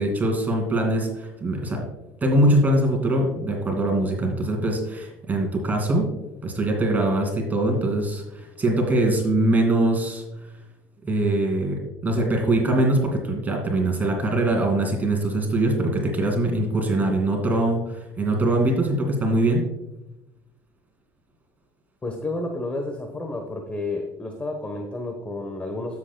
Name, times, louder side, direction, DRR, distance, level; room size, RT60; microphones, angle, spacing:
voice 1, 0.0-1.8 2.2-6.1 6.4-10.2 11.0-19.6, right 1 dB, 25° right, 2 dB, 2.4 m, -22 dB
voice 2, 22.0-26.0, left 2 dB, 20° left, 4 dB, 1.1 m, -31 dB
12.5 x 7.6 x 2.3 m, 0.96 s
supercardioid pair, 100°, 7 cm